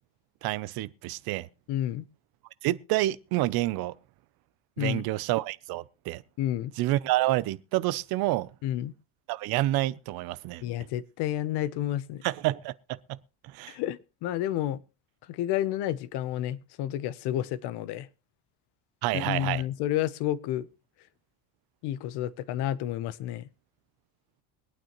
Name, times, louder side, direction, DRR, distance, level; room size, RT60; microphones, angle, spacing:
voice 1, 0.4-1.5 2.6-3.9 4.8-6.2 6.8-8.5 9.3-10.6 12.2-12.7 13.4-13.8 19.0-19.6, right 17 dB, 55° right, 0.6 m, -28 dB
voice 2, 1.7-2.0 4.8-5.0 6.4-6.7 8.6-8.9 10.6-12.2 13.7-14.8 15.3-18.1 19.1-20.7 21.8-23.5, left 12 dB, 65° left, 0.8 m, -30 dB
23.0 x 9.0 x 3.0 m
cardioid pair, 175°, 43 cm